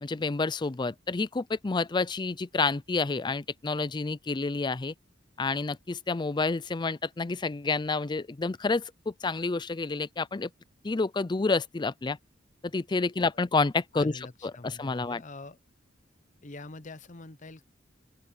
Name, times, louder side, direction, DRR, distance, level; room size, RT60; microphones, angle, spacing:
voice 1, 0.0-4.9 5.4-10.5 10.8-12.2 12.7-14.1 14.4-15.2, left 3 dB, 25° left, 0.4 m, -29 dB
voice 2, 13.9-15.6 16.4-17.6, left 3 dB, 40° left, 0.8 m, -45 dB
open air
head